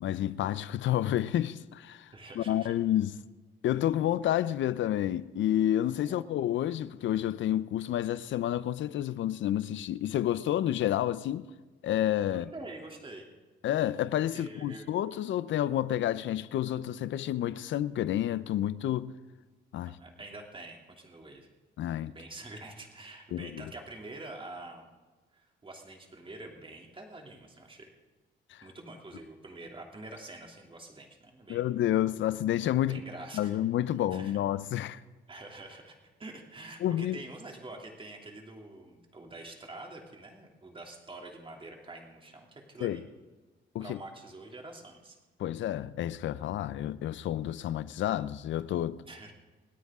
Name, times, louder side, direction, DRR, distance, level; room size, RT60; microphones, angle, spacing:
voice 1, 0.0-2.1 2.4-3.1 3.6-11.5 11.8-12.4 13.6-19.1 19.7-20.0 21.8-22.1 23.3-23.6 28.5-28.6 31.5-33.0 33.3-35.0 36.8-37.2 42.8-43.0 43.7-44.0 45.4-49.0, left 12 dB, 75° left, 0.7 m, -29 dB
voice 2, 2.1-2.7 6.0-6.3 12.3-13.3 14.3-14.9 19.8-21.5 22.1-24.9 25.3-27.9 28.6-31.7 32.8-33.6 34.1-34.4 35.3-43.1 43.8-45.2 49.0-49.3, right 2 dB, 25° right, 2.9 m, -46 dB
27.5 x 9.5 x 3.7 m
cardioid pair, 90°, 20 cm